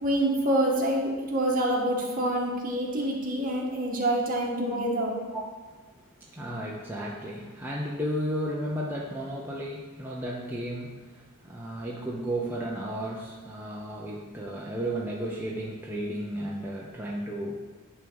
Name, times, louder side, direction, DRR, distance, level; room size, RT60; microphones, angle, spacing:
voice 1, 0.0-5.2, right 1 dB, 40° right, -2 dB, 1.8 m, -26 dB
voice 2, 5.1-17.7, right 1 dB, 10° right, -4 dB, 0.7 m, -34 dB
11.0 x 3.7 x 7.0 m, 1.4 s
head